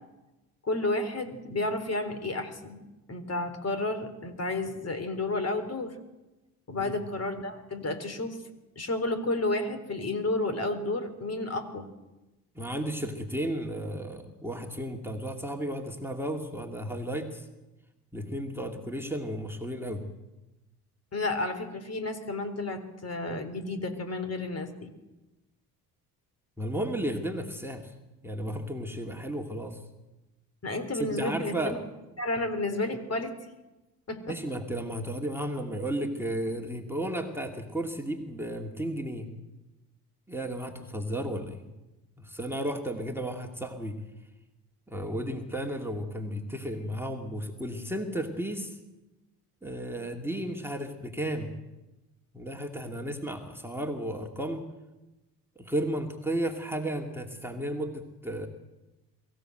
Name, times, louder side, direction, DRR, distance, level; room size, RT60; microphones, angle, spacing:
voice 1, 0.6-6.0 6.7-8.4 8.8-11.9 21.1-24.9 30.6-31.8 32.2-33.4 34.1-34.4, left 2 dB, 35° left, 9 dB, 3.7 m, -31 dB
voice 2, 12.5-17.5 18.1-20.0 26.6-27.9 28.2-29.8 30.9-31.8 34.3-39.3 40.3-41.7 42.2-43.9 44.9-48.8 49.6-51.5 52.3-54.6 55.6-58.5, right 1 dB, 5° right, 2 dB, 2.6 m, -33 dB
23.5 x 15.5 x 8.0 m, 1.1 s
hypercardioid pair, 60°, 45 cm